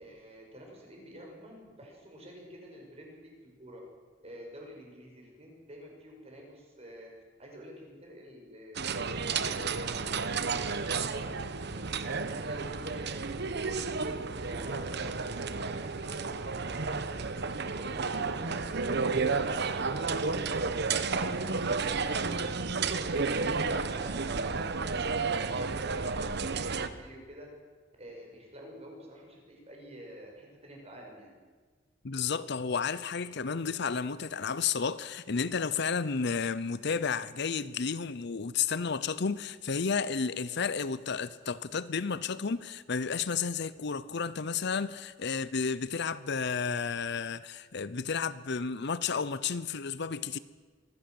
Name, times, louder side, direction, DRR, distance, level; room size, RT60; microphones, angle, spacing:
voice 1, 0.0-3.2 3.6-3.8 4.2-7.1 7.4-8.8 9.1-17.3 17.6-22.3 23.0-27.5 28.0-31.3, equal, 35° right, 6.0 m, -49 dB
sound 1, 8.8-26.9, right 4 dB, 60° right, 1.1 m, -32 dB
voice 2, 32.0-50.4, left 5 dB, 60° left, 0.7 m, -32 dB
23.5 x 15.5 x 7.8 m
head